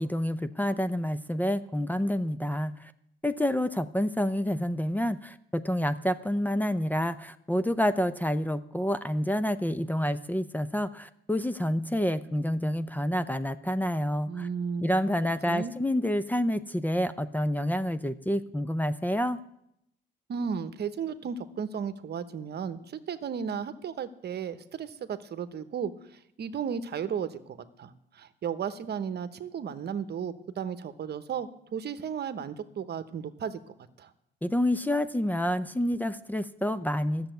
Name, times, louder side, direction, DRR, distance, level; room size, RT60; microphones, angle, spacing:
voice 1, 0.0-2.9 3.2-14.5 14.8-19.4 34.4-37.3, equal, 10° left, 13 dB, 0.6 m, -28 dB
voice 2, 14.3-14.9 15.5-15.7 20.3-34.1, right 7 dB, 55° right, 12 dB, 1.0 m, -34 dB
13.0 x 7.0 x 9.1 m, 0.78 s
cardioid pair, 90°, 20 cm